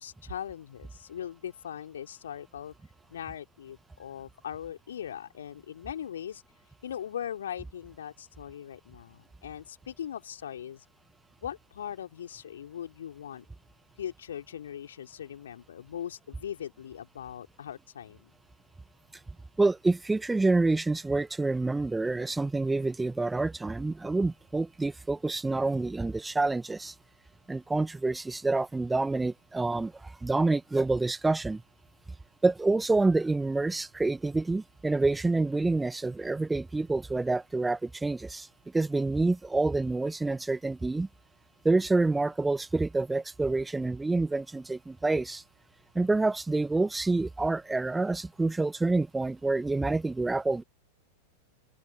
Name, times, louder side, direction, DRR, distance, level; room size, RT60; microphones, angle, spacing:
voice 1, 0.0-2.7 3.1-6.4 6.8-10.8 11.4-13.4 14.0-18.3, left 9 dB, 65° left, 2.8 m, -40 dB
voice 2, 19.6-26.9 27.5-31.6 32.4-38.5 38.7-41.1 41.6-45.4 45.9-50.6, right 3 dB, 10° right, 0.9 m, -27 dB
open air
figure-of-eight pair, 90°, 0 cm